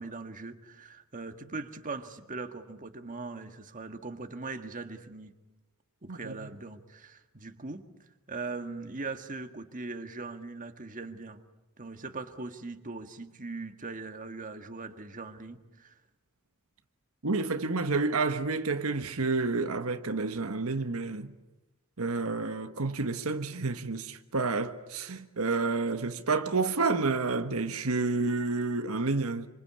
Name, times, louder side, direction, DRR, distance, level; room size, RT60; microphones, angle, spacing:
voice 1, 0.0-5.3 6.0-7.9 8.3-11.4 11.8-15.9, right 3 dB, 40° right, 1.7 m, -40 dB
voice 2, 6.1-6.5 17.2-21.3 22.0-29.5, right 3 dB, 85° right, 1.3 m, -29 dB
26.5 x 26.0 x 8.7 m
head